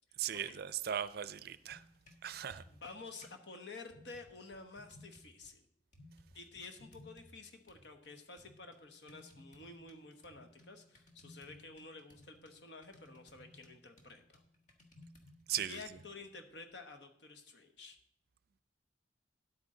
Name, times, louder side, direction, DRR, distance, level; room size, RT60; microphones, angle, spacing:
voice 1, 0.2-1.8 2.2-2.6 15.5-15.8, right 10 dB, 60° right, 0.4 m, -38 dB
sound 1, 1.5-3.4 3.9-5.5 5.9-7.4 7.7-16.2, left 1 dB, 45° left, 1.3 m, -60 dB
voice 2, 2.7-5.6 6.3-14.4 15.7-18.0, left 3 dB, 70° left, 1.1 m, -51 dB
10.5 x 8.3 x 3.8 m
head